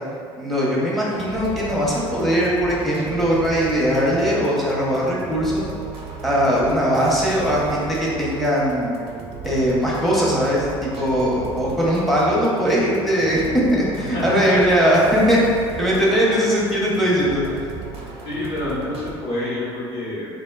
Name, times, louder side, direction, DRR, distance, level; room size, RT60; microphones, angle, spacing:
voice 1, 0.4-5.7 6.2-9.0 9.4-13.4 13.7-15.4 15.7-17.4, equal, ahead, -6 dB, 0.7 m, -20 dB
sound 1, 1.1-19.1, right 4 dB, 45° right, 0.4 m, -35 dB
voice 2, 14.1-14.5 18.2-20.3, left 1 dB, 50° left, -8 dB, 1.0 m, -27 dB
3.2 x 2.1 x 2.3 m, 2.3 s
hypercardioid pair, 70°, 13 cm